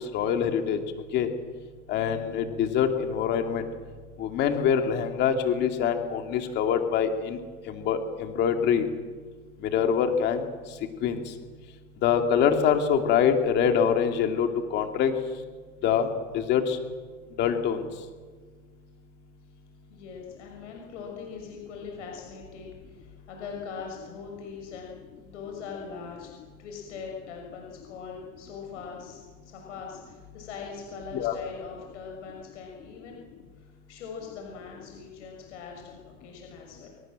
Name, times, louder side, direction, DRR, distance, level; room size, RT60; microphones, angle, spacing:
voice 1, 0.1-0.8 1.1-1.3 1.9-3.7 4.2-7.4 7.7-8.9 9.6-10.4 11.0-11.2 12.0-15.1 15.8-16.8 17.4-17.8 31.1-31.3, left 7 dB, 25° left, 6 dB, 2.6 m, -24 dB
voice 2, 19.9-33.2 33.6-36.9, left 5 dB, 65° left, 0 dB, 6.4 m, -41 dB
26.0 x 24.0 x 7.7 m, 1.5 s
supercardioid pair, 160°, 38 cm